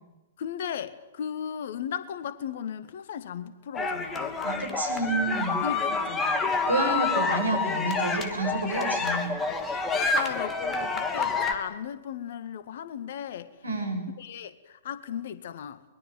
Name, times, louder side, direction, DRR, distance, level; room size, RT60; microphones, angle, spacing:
voice 1, 0.4-4.5 5.6-6.6 9.9-13.5 14.2-15.8, left 8 dB, 55° left, 1.9 m, -36 dB
sound 1, 3.7-11.5, left 4 dB, 15° left, 2.9 m, -28 dB
voice 2, 4.4-5.7 6.6-9.3 13.6-14.1, right 2 dB, 80° right, 7.4 m, -29 dB
23.5 x 22.0 x 9.3 m
figure-of-eight pair, 110°, 0 cm